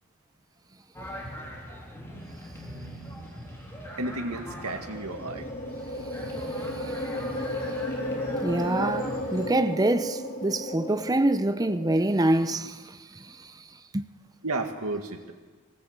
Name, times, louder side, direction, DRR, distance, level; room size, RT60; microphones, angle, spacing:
sound 1, 0.9-9.5, equal, 10° left, 3.3 m, -41 dB
voice 1, 4.0-5.5 14.4-15.3, right 2 dB, 80° right, 2.0 m, -32 dB
sound 2, 4.6-12.3, left 1 dB, 40° left, 2.6 m, -34 dB
voice 2, 6.4-7.1 7.4-7.5 8.4-13.5 13.9-14.1, right 1 dB, 15° right, 0.6 m, -26 dB
21.5 x 17.5 x 8.2 m
head